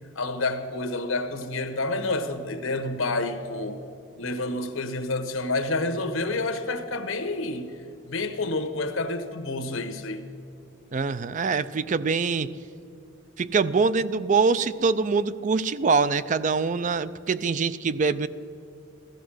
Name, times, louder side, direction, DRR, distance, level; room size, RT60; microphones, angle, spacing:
voice 1, 0.1-3.8 4.2-7.7 8.0-10.2, left 2 dB, 80° left, 7 dB, 1.2 m, -29 dB
voice 2, 10.9-12.5 13.4-18.3, right 4 dB, 40° right, 15 dB, 0.4 m, -24 dB
16.0 x 13.0 x 6.3 m, 2.6 s
head